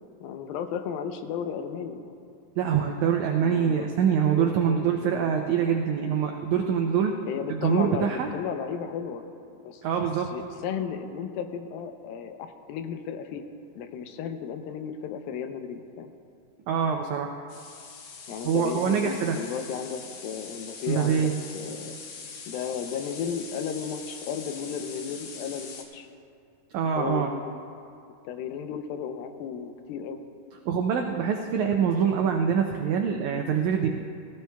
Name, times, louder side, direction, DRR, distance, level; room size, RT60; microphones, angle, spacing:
voice 1, 0.2-2.2 3.4-3.9 4.3-5.3 7.3-9.2 9.6-9.8 10.3-13.4 13.8-16.1 18.3-21.3 21.5-22.0 22.5-26.1 27.0-27.6 28.2-30.2, left 7 dB, 90° left, 7 dB, 2.5 m, -34 dB
voice 2, 2.6-7.2 7.5-8.3 9.8-10.5 16.7-17.3 18.4-19.4 20.9-21.3 26.7-27.3 30.7-33.9, right 7 dB, 90° right, 3 dB, 1.6 m, -25 dB
sound 1, 17.5-25.8, left 5 dB, 75° left, 2.8 m, -42 dB
17.0 x 16.5 x 2.3 m, 2.5 s
omnidirectional pair, 4.1 m